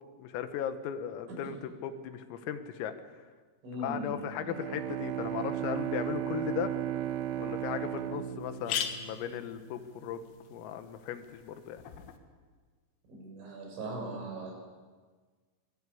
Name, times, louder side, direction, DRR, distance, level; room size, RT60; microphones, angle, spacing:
voice 1, 0.2-2.9 3.8-6.7 7.4-10.2 10.5-11.8, left 9 dB, 80° left, 9 dB, 4.0 m, -37 dB
voice 2, 3.6-4.3 13.1-14.5, right 1 dB, 60° right, 0 dB, 9.0 m, -39 dB
Bowed string instrument, 4.4-9.6, right 11 dB, 85° right, 3.9 m, -35 dB
sound 1, 7.1-7.2 7.7-7.8 8.0-8.1 8.4-12.2, left 8 dB, 65° left, 3.6 m, -40 dB
23.5 x 21.5 x 8.6 m, 1.5 s
omnidirectional pair, 6.0 m